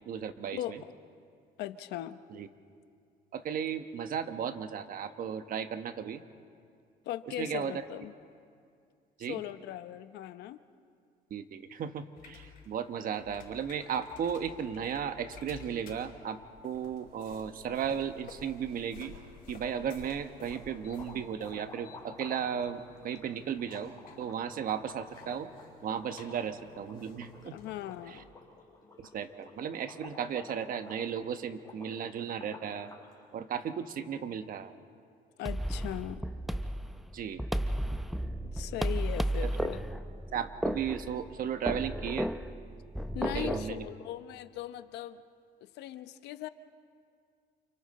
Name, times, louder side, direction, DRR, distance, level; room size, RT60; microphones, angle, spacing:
voice 1, 0.1-0.8 2.3-2.5 3.3-6.2 7.3-7.7 9.2-9.4 11.3-19.1 19.5-25.5 25.8-27.6 28.1-28.2 29.0-32.9 33.3-34.7 37.1-37.4 39.4-39.7 40.3-42.3 43.3-43.9, right 8 dB, 55° right, 9 dB, 1.3 m, -35 dB
voice 2, 1.6-2.2 7.0-8.1 9.3-10.6 27.5-28.3 35.4-36.3 38.4-39.8 43.1-45.2 45.6-46.5, left 13 dB, 85° left, 11 dB, 0.9 m, -39 dB
sound 1, 12.2-28.2, left 4 dB, 55° left, 6.9 m, -53 dB
sound 2, 19.4-20.1 20.4-33.1, left 3 dB, 20° left, 6.0 m, -52 dB
sound 3, 35.5-43.7, equal, ahead, 0.8 m, -34 dB
29.5 x 29.0 x 4.3 m, 2.3 s
cardioid pair, 110°, 17 cm